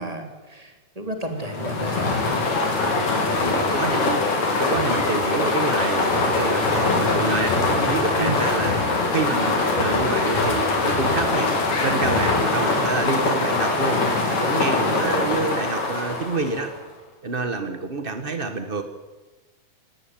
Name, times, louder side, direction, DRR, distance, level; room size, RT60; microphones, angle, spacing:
voice 1, 0.0-2.3 3.1-3.2 8.2-8.4 12.2-12.3 14.8-15.5, right 1 dB, 10° right, 4 dB, 2.9 m, -31 dB
sound 1, 1.4-16.8, left 3 dB, 60° left, 5.0 m, -23 dB
sound 2, 2.0-12.9, left 3 dB, 90° left, 5.2 m, -31 dB
voice 2, 3.4-4.2 4.6-8.7 9.1-11.5 11.8-14.0 14.3-16.7 17.2-18.8, right 3 dB, 55° right, 7 dB, 0.6 m, -27 dB
19.5 x 17.5 x 9.3 m, 1.2 s
omnidirectional pair, 3.7 m